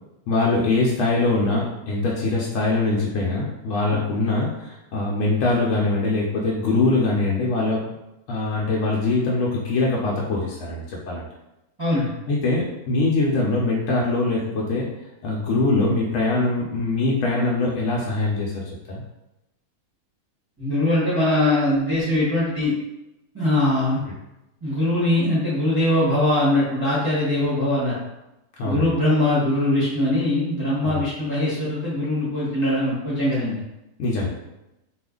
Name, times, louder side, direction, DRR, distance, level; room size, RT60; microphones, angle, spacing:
voice 1, 0.3-7.9 8.3-11.3 12.3-14.9 15.2-19.0 28.6-28.9 30.8-31.0 34.0-34.3, left 2 dB, 70° left, -4 dB, 0.8 m, -23 dB
voice 2, 11.8-12.1 20.6-22.7 23.3-24.0 24.6-27.9 28.6-33.6, left 1 dB, 20° right, -8 dB, 0.7 m, -21 dB
2.5 x 2.4 x 3.6 m, 0.92 s
omnidirectional pair, 1.8 m